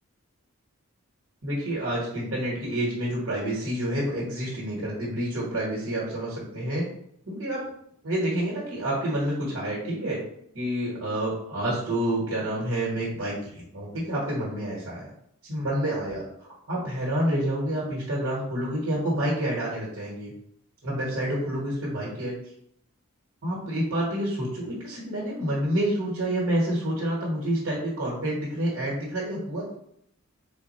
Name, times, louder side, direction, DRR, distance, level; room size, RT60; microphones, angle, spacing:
voice 1, 1.4-6.8 7.3-7.6 8.0-10.2 10.5-15.0 15.4-20.3 20.8-22.3 23.4-29.7, right 1 dB, 65° right, -6 dB, 1.4 m, -28 dB
4.0 x 2.3 x 4.2 m, 0.70 s
head